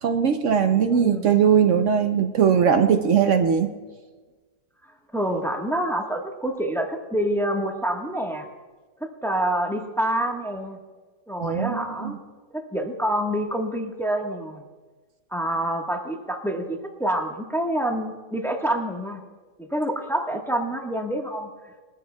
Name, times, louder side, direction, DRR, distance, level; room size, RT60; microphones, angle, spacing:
voice 1, 0.0-3.7 11.4-12.2, right 7 dB, 65° right, 7 dB, 0.7 m, -20 dB
voice 2, 0.9-1.2 3.2-3.4 5.1-8.5 9.0-10.8 11.3-12.2 12.5-14.6 15.3-19.2 19.6-21.5, right 1 dB, ahead, 1 dB, 1.0 m, -27 dB
22.0 x 13.5 x 2.3 m, 1.3 s
omnidirectional pair, 1.9 m